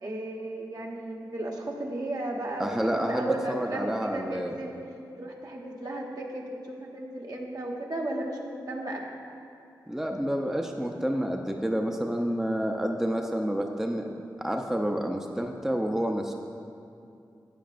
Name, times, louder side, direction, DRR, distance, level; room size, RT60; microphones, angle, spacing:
voice 1, 0.0-4.7 5.2-9.0, right 1 dB, 60° right, -2 dB, 1.2 m, -35 dB
voice 2, 2.6-4.5 9.9-14.1 14.4-16.3, equal, 5° right, 2 dB, 0.6 m, -29 dB
11.5 x 8.3 x 2.6 m, 2.6 s
cardioid pair, 50°, 8 cm